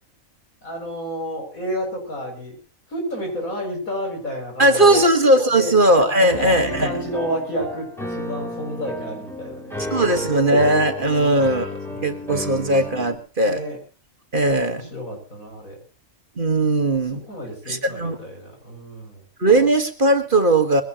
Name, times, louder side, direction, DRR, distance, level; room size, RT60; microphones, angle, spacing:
voice 1, 0.6-2.6 2.9-5.1 5.5-5.8 6.2-10.4 11.9-12.3 13.4-13.8 14.7-15.8 17.3-19.2, equal, 85° left, 1 dB, 7.5 m, -31 dB
voice 2, 4.6-6.9 9.9-13.6 14.3-14.9 16.4-17.3 17.7-18.2 19.4-20.8, right 1 dB, 40° right, 6 dB, 1.9 m, -18 dB
Piano, 6.3-13.1, left 1 dB, ahead, 3.7 m, -32 dB
22.0 x 17.5 x 3.0 m, 0.36 s
omnidirectional pair, 1.4 m